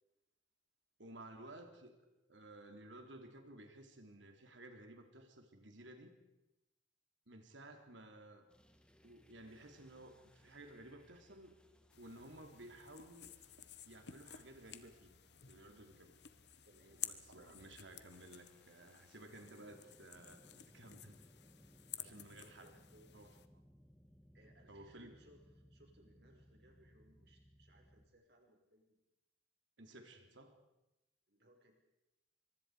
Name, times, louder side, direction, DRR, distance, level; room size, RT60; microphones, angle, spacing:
voice 1, 1.0-6.2 7.3-8.5 9.0-11.6 12.0-13.3 13.9-15.2 15.5-16.1 16.9-21.2 22.0-22.7 23.1-23.3 24.7-25.2 29.8-30.5, right 1 dB, 85° right, 5 dB, 3.3 m, -55 dB
sound 1, 8.5-28.1, equal, 5° left, 1.7 m, -67 dB
sound 2, 11.9-23.5, left 11 dB, 65° left, 1.2 m, -53 dB
voice 2, 16.7-17.0 20.6-20.7 22.0-22.2 22.6-23.1 24.3-29.0 29.8-30.3 31.3-31.7, right 1 dB, 60° right, 2 dB, 5.3 m, -67 dB
24.5 x 23.5 x 5.0 m, 0.95 s
head